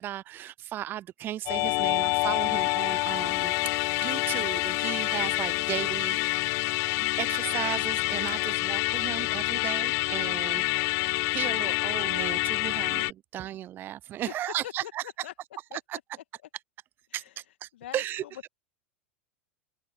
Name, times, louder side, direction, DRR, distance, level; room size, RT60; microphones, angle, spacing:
voice 1, 0.0-6.5 7.2-15.0 15.7-16.0 17.1-18.2, right 12 dB, 30° right, 0.4 m, -35 dB
Musical instrument, 1.5-13.1, left 27 dB, 45° left, 0.4 m, -27 dB
voice 2, 14.6-15.3 15.7-16.2 17.1-17.3 17.7-18.5, left 13 dB, 65° left, 2.1 m, -43 dB
open air
figure-of-eight pair, 85°, 7 cm